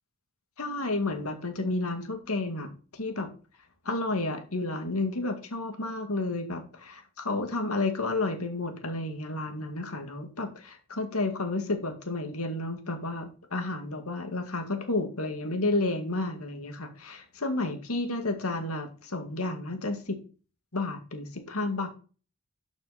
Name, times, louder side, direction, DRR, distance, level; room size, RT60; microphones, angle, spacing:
voice 1, 0.6-2.7 2.9-3.3 3.9-20.2 20.7-21.9, left 2 dB, 90° left, 5 dB, 2.3 m, -31 dB
12.5 x 6.1 x 4.4 m, 0.36 s
head